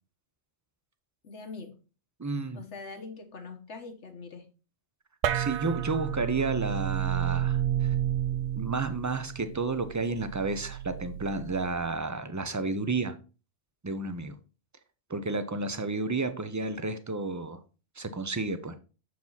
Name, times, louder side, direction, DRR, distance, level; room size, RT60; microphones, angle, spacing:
voice 1, 1.2-1.7 2.5-4.4, left 4 dB, 75° left, 1.6 m, -43 dB
voice 2, 2.2-2.6 5.3-7.9 8.6-13.2 13.8-14.4 15.1-17.6 18.0-18.8, right 3 dB, 25° right, 0.4 m, -31 dB
sound 1, 5.2-12.0, right 11 dB, 75° right, 0.9 m, -31 dB
7.1 x 4.7 x 3.9 m
omnidirectional pair, 1.2 m